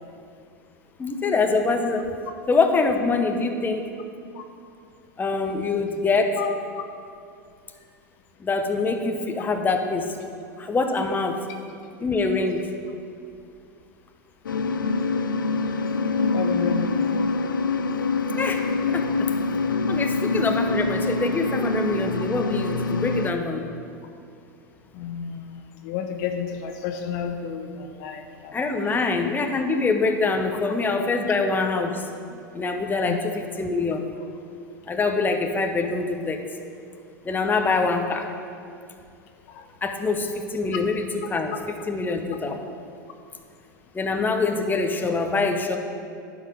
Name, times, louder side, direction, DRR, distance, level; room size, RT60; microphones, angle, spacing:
voice 1, 1.0-2.1 2.5-3.8 5.2-6.4 8.4-10.2 10.6-11.4 12.0-12.6 18.4-19.3 19.7-23.7 28.5-32.1 32.5-34.0 34.9-36.4 37.2-38.3 39.8-41.0 41.3-41.5 41.9-42.6 43.9-45.8, left 3 dB, 15° left, 5 dB, 0.8 m, -24 dB
sound 1, 14.5-23.3, left 3 dB, 90° left, 0.4 m, -25 dB
voice 2, 16.3-17.2 24.9-25.5 25.8-28.6 28.8-29.0 33.0-33.2 39.5-39.6, left 7 dB, 60° left, 6 dB, 0.7 m, -31 dB
11.0 x 4.9 x 5.4 m, 2.4 s
hypercardioid pair, 90°, 11 cm